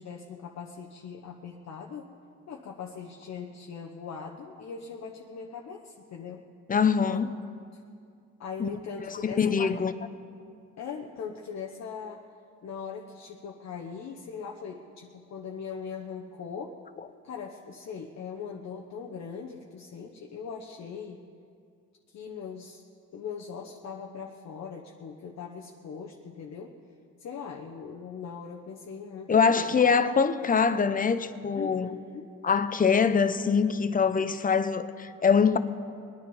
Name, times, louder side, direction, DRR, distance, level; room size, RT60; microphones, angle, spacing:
voice 1, 0.0-2.1 2.5-6.4 7.0-7.2 7.7-7.8 8.4-9.8 10.8-12.3 12.6-16.8 17.2-21.2 22.1-22.8 23.1-26.7 27.2-29.8 31.5-32.3, left 6 dB, 60° left, 1.0 m, -40 dB
voice 2, 6.7-7.3 8.6-8.7 9.1-9.9 29.3-31.9 32.4-35.6, left 6 dB, 30° left, 0.7 m, -24 dB
21.0 x 9.5 x 5.5 m
cardioid pair, 90°, 30 cm